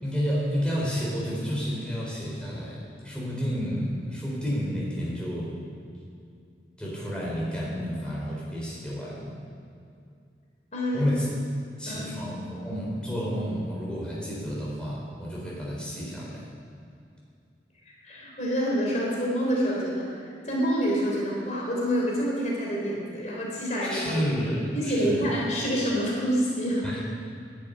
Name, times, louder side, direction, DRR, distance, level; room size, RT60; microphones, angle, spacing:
voice 1, 0.0-5.6 6.8-9.3 10.9-11.4 11.8-16.5 23.8-25.3 26.8-27.0, equal, 5° left, -5 dB, 4.0 m, -30 dB
voice 2, 10.7-11.0 11.9-12.1 17.9-24.3 24.7-26.9, equal, 40° left, -3 dB, 3.3 m, -27 dB
11.5 x 11.0 x 9.7 m, 2.4 s
head